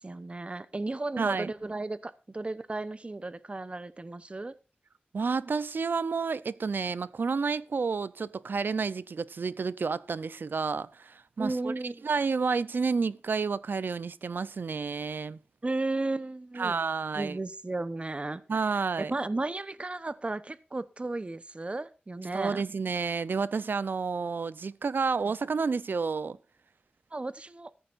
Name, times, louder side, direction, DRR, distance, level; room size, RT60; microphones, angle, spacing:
voice 1, 0.0-4.5 11.4-12.0 15.6-16.8 17.1-18.4 19.0-22.6 27.1-27.7, right 2 dB, 35° right, 0.9 m, -34 dB
voice 2, 1.2-1.5 5.1-11.7 12.0-15.4 16.6-17.4 18.5-19.1 22.3-26.4, right 5 dB, 90° right, 0.6 m, -30 dB
15.0 x 14.0 x 2.6 m
wide cardioid pair, 75°, 3 cm